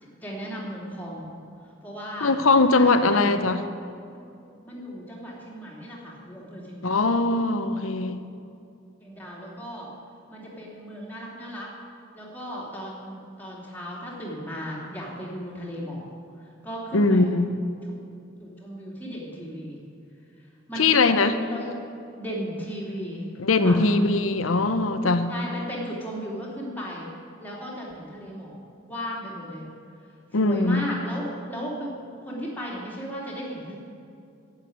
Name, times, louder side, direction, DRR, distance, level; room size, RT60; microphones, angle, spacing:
voice 1, 0.2-1.4 1.8-2.3 2.7-3.4 4.6-7.1 9.0-9.9 10.3-11.7 12.1-16.1 16.6-17.4 17.8-17.9 18.4-19.8 20.7-21.1 21.4-21.8 22.1-23.2 23.6-23.8 25.3-27.1 27.4-28.6 28.9-29.6 30.3-31.9 32.2-33.8, equal, 10° left, -5 dB, 2.8 m, -36 dB
voice 2, 2.2-3.6 6.8-8.2 16.9-17.5 20.8-21.4 23.4-25.2 30.3-30.9, left 3 dB, 90° left, 10 dB, 0.8 m, -21 dB
12.0 x 8.0 x 9.5 m, 2.5 s
head